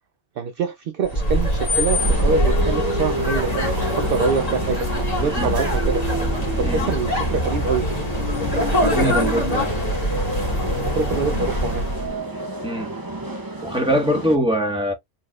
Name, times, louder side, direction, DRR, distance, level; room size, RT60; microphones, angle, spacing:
voice 1, 0.4-4.9 5.2-6.0 6.6-7.8 10.8-11.8, right 5 dB, 60° right, 0.7 m, -25 dB
sound 1, 1.0-12.2, equal, 35° left, 1.8 m, -23 dB
sound 2, 2.0-14.4, right 1 dB, 20° right, 0.7 m, -30 dB
voice 2, 5.2-5.5 6.6-6.9 8.8-9.7 12.6-12.9 13.6-14.9, equal, 5° right, 1.4 m, -23 dB
4.1 x 3.1 x 2.4 m
omnidirectional pair, 1.2 m